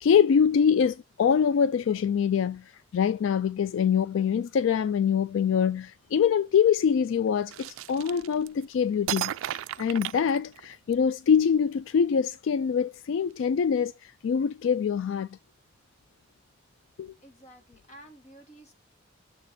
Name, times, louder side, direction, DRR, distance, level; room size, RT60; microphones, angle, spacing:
voice 1, 0.0-2.6 2.9-15.3 17.0-17.1, left 7 dB, 75° left, 0.3 m, -24 dB
sound 1, 7.5-8.6 9.1-10.9, right 12 dB, 85° right, 0.3 m, -34 dB
voice 2, 17.2-18.7, right 1 dB, 35° left, 1.6 m, -51 dB
6.8 x 4.2 x 5.0 m
head